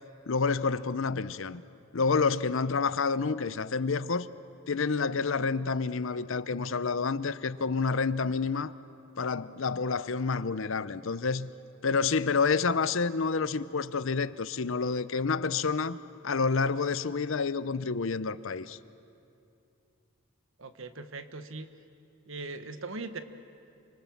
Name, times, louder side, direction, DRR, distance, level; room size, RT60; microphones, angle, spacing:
voice 1, 0.3-1.6 1.9-4.3 4.7-8.7 9.2-11.5 11.8-16.0 16.2-18.8, left 4 dB, 60° left, 0.7 m, -28 dB
voice 2, 20.6-21.7 22.3-23.2, right 3 dB, 60° right, 1.3 m, -40 dB
28.5 x 25.5 x 7.2 m
head